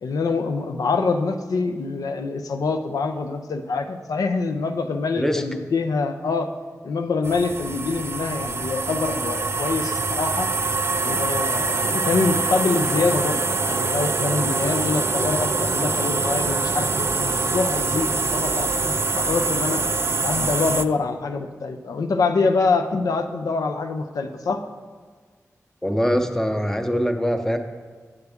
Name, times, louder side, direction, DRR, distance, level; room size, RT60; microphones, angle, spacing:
voice 1, 0.0-6.5 6.8-10.5 11.0-19.8 20.2-24.6, left 4 dB, 90° left, 6 dB, 0.5 m, -25 dB
sound 1, 7.2-20.8, right 3 dB, 45° right, 0.3 m, -24 dB
voice 2, 25.8-27.6, equal, 5° left, 6 dB, 0.7 m, -22 dB
7.9 x 6.9 x 3.5 m, 1.5 s
cardioid pair, 45°, 6 cm